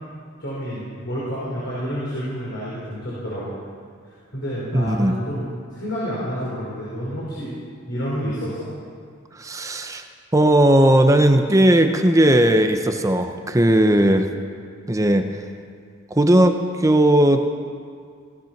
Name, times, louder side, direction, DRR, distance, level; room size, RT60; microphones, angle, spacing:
voice 1, 0.4-3.6 4.0-7.6 7.9-8.7, equal, 65° left, -8 dB, 4.5 m, -29 dB
voice 2, 4.7-5.2 9.4-10.0 10.3-14.3 14.9-15.3 16.1-17.4, right 1 dB, 15° right, 6 dB, 0.8 m, -17 dB
17.5 x 13.5 x 5.9 m, 2.1 s
head